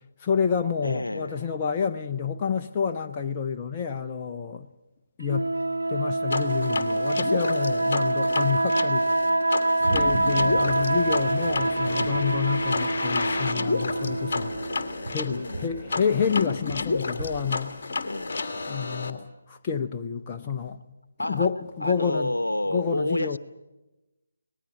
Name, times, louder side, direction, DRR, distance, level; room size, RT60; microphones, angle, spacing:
voice 1, 0.2-4.7 5.2-5.5 5.9-9.1 9.9-14.5 15.1-17.8 18.7-20.8 21.3-22.3 22.7-23.4, left 6 dB, 20° left, 0.8 m, -28 dB
voice 2, 0.8-1.5 7.8-8.2 15.3-15.9 18.0-18.4 21.2-21.5 21.8-23.4, left 1 dB, 75° left, 1.0 m, -30 dB
sound 1, 5.3-15.0, right 2 dB, 75° right, 1.6 m, -26 dB
sound 2, 6.3-19.1, left 3 dB, 40° left, 1.8 m, -31 dB
sound 3, 9.8-17.2, right 2 dB, 45° right, 7.9 m, -36 dB
24.5 x 19.0 x 7.6 m
figure-of-eight pair, 150°, 0 cm